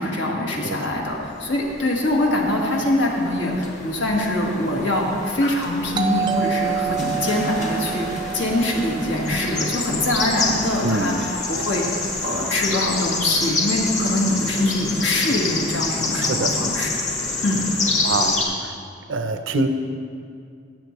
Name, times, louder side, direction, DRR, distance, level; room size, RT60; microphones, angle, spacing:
voice 1, 0.0-16.9 17.4-17.7, left 1 dB, 75° left, -2 dB, 1.6 m, -23 dB
sound 1, 1.0-18.4, left 3 dB, 40° left, 1.3 m, -28 dB
Doorbell, 5.9-10.5, right 8 dB, 20° right, 0.4 m, -28 dB
voice 2, 16.2-16.6 18.0-18.7 19.1-19.7, right 2 dB, 80° right, 7 dB, 0.7 m, -24 dB
16.0 x 7.7 x 3.2 m, 2.3 s
head